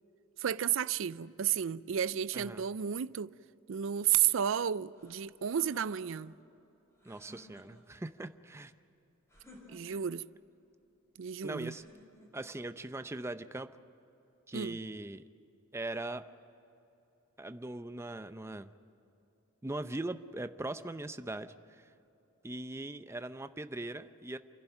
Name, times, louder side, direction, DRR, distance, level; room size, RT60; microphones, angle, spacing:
voice 1, 0.4-3.3 3.7-6.3 9.7-10.3 11.2-11.8 14.5-14.8, right 9 dB, 65° right, 0.4 m, -32 dB
voice 2, 2.3-2.6 7.0-8.7 9.9-10.0 11.4-11.9 12.3-13.7 14.5-15.2 15.7-16.2 17.4-18.7 19.6-21.9 22.4-24.4, right 2 dB, 15° right, 0.6 m, -40 dB
sound 1, 4.9-6.3 6.9-8.0 9.3-10.2 11.7-12.5, equal, 15° left, 6.7 m, -56 dB
28.5 x 11.5 x 9.1 m
head